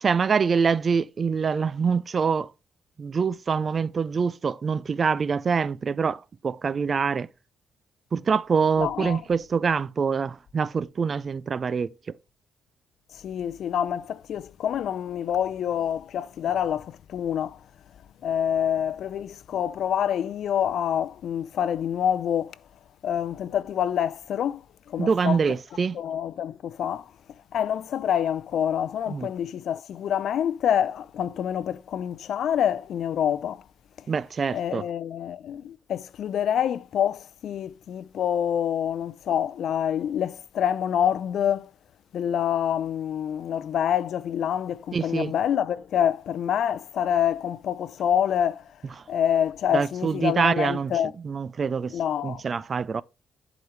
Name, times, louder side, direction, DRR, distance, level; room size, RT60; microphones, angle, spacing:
voice 1, 0.0-2.5 3.0-7.3 8.1-11.9 25.0-26.0 29.1-29.3 34.1-34.9 44.9-45.3 49.7-50.9 51.2-51.9 52.2-53.0, right 5 dB, 40° right, 0.4 m, -25 dB
voice 2, 8.8-9.2 13.1-17.6 18.2-22.6 23.0-24.6 24.9-25.4 25.9-27.1 27.5-33.6 34.5-41.7 42.1-48.6 49.1-51.1 51.9-52.4, left 9 dB, 70° left, 0.5 m, -26 dB
11.0 x 5.0 x 3.2 m
cardioid pair, 90°, 0 cm